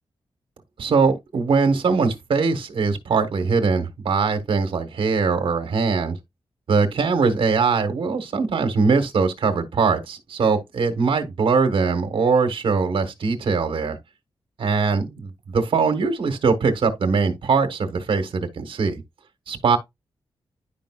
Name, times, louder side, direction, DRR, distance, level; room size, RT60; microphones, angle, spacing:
voice 1, 0.8-6.2 6.7-14.0 14.6-19.0 19.5-19.8, right 4 dB, 70° right, 1.3 m, -21 dB
10.5 x 5.2 x 2.3 m
wide cardioid pair, 155°, 9 cm